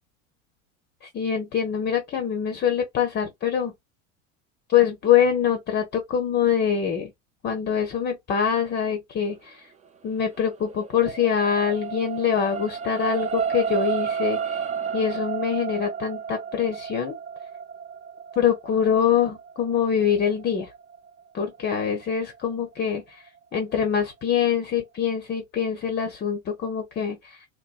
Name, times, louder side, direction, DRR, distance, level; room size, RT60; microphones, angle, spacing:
voice 1, 1.0-3.7 4.7-7.1 7.4-9.7 10.0-14.6 14.9-17.1 18.4-20.7 21.3-23.2 23.5-27.4, left 8 dB, 25° left, 0.6 m, -24 dB
sound 1, 10.2-22.7 23.3-23.4, right 7 dB, 20° right, 0.5 m, -32 dB
2.9 x 2.1 x 2.3 m
hypercardioid pair, 80°, 40 cm